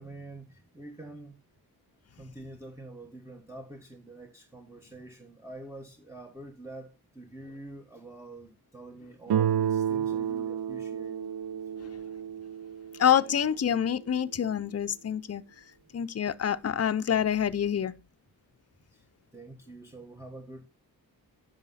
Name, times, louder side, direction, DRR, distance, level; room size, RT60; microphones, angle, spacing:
voice 1, 0.0-1.4 2.1-12.0 18.9-19.1 19.3-20.6, right 2 dB, 5° right, 1.4 m, -46 dB
Guitar, 9.3-14.1, right 9 dB, 85° right, 0.6 m, -31 dB
voice 2, 13.0-15.4 15.9-17.9, left 9 dB, 40° left, 0.6 m, -26 dB
10.5 x 6.5 x 4.0 m
wide cardioid pair, 100°, 38 cm